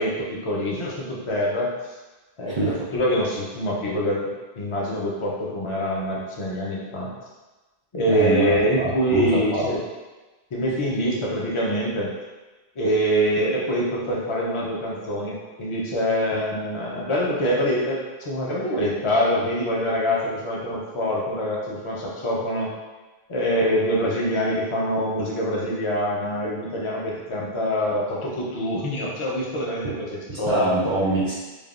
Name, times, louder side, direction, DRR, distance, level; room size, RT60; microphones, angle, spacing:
voice 1, 0.0-1.7 2.4-7.1 7.9-9.8 10.5-12.1 12.8-22.7 23.3-30.7, equal, 45° left, -4 dB, 0.4 m, -25 dB
voice 2, 8.1-9.7 30.3-31.4, right 2 dB, 50° right, -6 dB, 0.3 m, -24 dB
3.3 x 2.1 x 2.4 m, 1.2 s
omnidirectional pair, 1.1 m